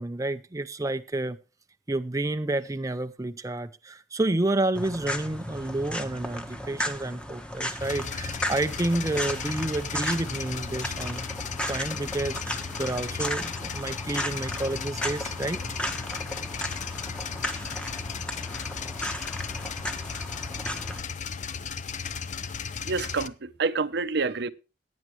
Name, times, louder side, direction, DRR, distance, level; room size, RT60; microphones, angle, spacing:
voice 1, 0.0-1.4 1.9-11.4 11.7-15.6, right 2 dB, 20° right, 0.5 m, -30 dB
sound 1, 4.7-21.0, equal, 5° left, 1.2 m, -35 dB
sound 2, 7.8-23.3, left 6 dB, 45° left, 0.7 m, -35 dB
voice 2, 22.9-24.5, right 4 dB, 65° right, 0.7 m, -28 dB
17.0 x 9.4 x 3.1 m
head